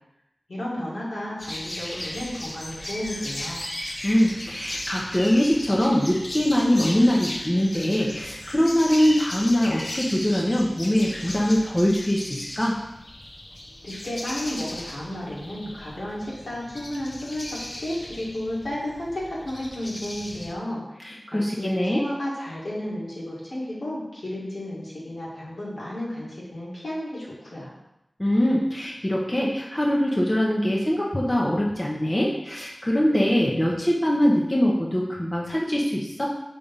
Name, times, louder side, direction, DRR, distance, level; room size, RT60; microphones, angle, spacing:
voice 1, 0.5-3.6 13.8-27.7, left 1 dB, 80° left, -8 dB, 2.3 m, -33 dB
sound 1, 1.4-20.5, left 1 dB, 55° left, 0.9 m, -36 dB
voice 2, 4.0-12.7 21.0-22.0 28.2-36.3, equal, 25° left, -3 dB, 1.0 m, -22 dB
5.1 x 3.3 x 5.6 m, 0.88 s
wide cardioid pair, 55°, 0 cm